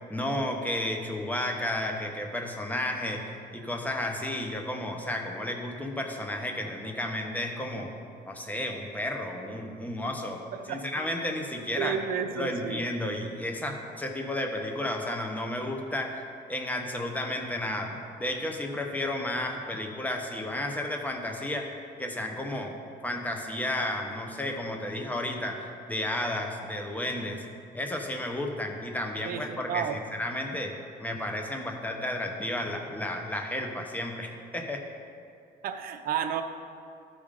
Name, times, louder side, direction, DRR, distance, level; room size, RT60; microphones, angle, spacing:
voice 1, 0.1-7.9 8.3-10.4 10.7-12.0 12.3-21.7 22.0-22.7 23.0-27.4 27.7-30.7 31.0-34.8, left 1 dB, 10° left, 2 dB, 1.0 m, -32 dB
voice 2, 10.5-11.1 11.8-12.8 29.2-30.0 35.6-36.4, right 8 dB, 60° right, 7 dB, 0.7 m, -32 dB
13.0 x 5.0 x 3.8 m, 2.4 s
cardioid pair, 110°, 17 cm